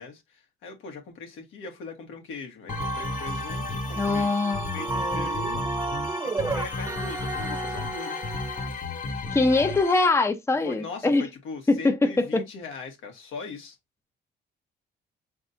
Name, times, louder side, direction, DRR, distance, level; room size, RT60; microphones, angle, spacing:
voice 1, 0.0-4.4 4.7-5.6 6.2-8.4 10.6-13.8, left 4 dB, 80° left, 1.6 m, -40 dB
sound 1, 2.7-10.1, left 3 dB, 45° left, 1.1 m, -33 dB
sound 2, 2.7-8.7, right 3 dB, 15° right, 0.3 m, -33 dB
voice 2, 3.9-5.4 9.3-11.3 11.7-12.4, left 3 dB, 15° left, 0.7 m, -23 dB
5.1 x 3.5 x 2.8 m
cardioid pair, 90°, 20 cm